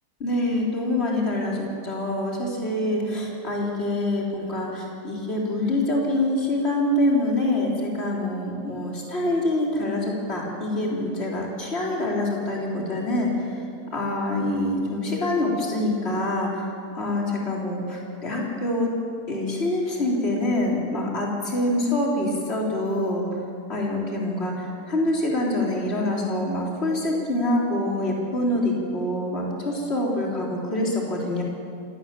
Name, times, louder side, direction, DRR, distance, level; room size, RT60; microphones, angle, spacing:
voice 1, 0.2-13.6 13.9-16.7 17.0-18.9 19.3-23.3 23.7-31.4, left 1 dB, 40° left, -2 dB, 4.1 m, -25 dB
27.0 x 17.0 x 7.5 m, 2.4 s
omnidirectional pair, 1.7 m